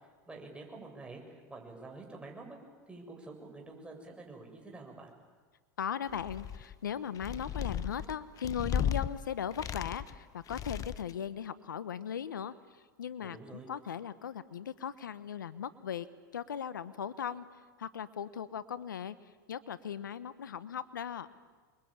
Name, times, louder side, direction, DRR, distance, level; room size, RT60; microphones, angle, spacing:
voice 1, 0.3-2.6 2.9-5.1 13.2-13.7, right 3 dB, 10° right, 1 dB, 7.5 m, -48 dB
voice 2, 5.8-16.1 16.3-21.3, left 8 dB, 90° left, 15 dB, 1.1 m, -38 dB
sound 1, 6.1-6.7 7.2-9.1 9.5-10.2 10.5-11.2, left 9 dB, 35° left, 1.0 m, -35 dB
28.5 x 23.0 x 8.9 m, 1.4 s
hypercardioid pair, 100°, 10 cm